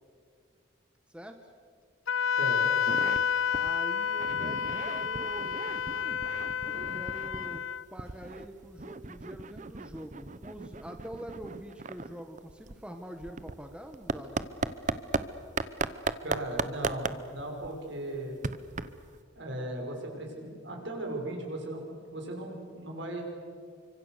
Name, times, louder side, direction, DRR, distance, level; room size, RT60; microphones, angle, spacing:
Wind instrument woodwind instrument, 2.1-7.8, left 7 dB, 85° left, 0.6 m, -30 dB
sound 1, 2.9-3.2 3.5-3.7 4.0-7.6 8.0-15.2 15.6-19.2, right 3 dB, 40° right, 0.8 m, -36 dB
voice 1, 3.5-5.6 6.7-14.5, right 1 dB, 5° right, 5 dB, 1.2 m, -45 dB
voice 2, 16.2-18.4 19.3-23.2, right 1 dB, 65° right, 1 dB, 6.1 m, -37 dB
30.0 x 25.0 x 6.7 m, 2.1 s
head